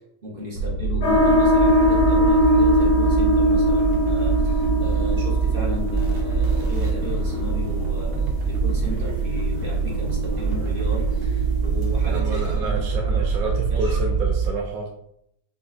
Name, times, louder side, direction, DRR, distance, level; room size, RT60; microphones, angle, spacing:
voice 1, 0.2-13.2 13.7-14.2, equal, 40° right, -5 dB, 0.9 m, -35 dB
sound 1, 0.6-14.5, right 5 dB, 90° right, 1.4 m, -24 dB
sound 2, 1.0-12.1, left 1 dB, 40° left, 1.1 m, -23 dB
voice 2, 12.0-15.1, right 2 dB, 70° right, 0 dB, 0.9 m, -29 dB
5.3 x 2.3 x 2.4 m, 0.74 s
omnidirectional pair, 1.9 m